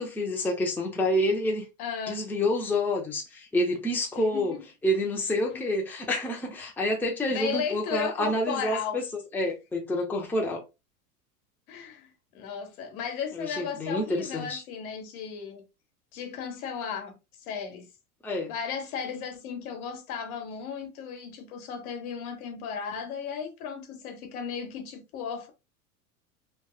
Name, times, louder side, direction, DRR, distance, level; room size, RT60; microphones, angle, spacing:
voice 1, 0.0-1.7 2.1-4.5 4.8-10.6 13.3-14.6 18.2-18.5, left 1 dB, 5° left, 0.6 m, -28 dB
voice 2, 1.8-2.3 4.2-4.6 5.5-5.7 7.3-9.0 11.7-15.6 16.1-17.1 17.5-17.9 18.5-25.5, left 6 dB, 70° left, 1.0 m, -35 dB
3.0 x 2.2 x 2.2 m
hypercardioid pair, 95°, 46 cm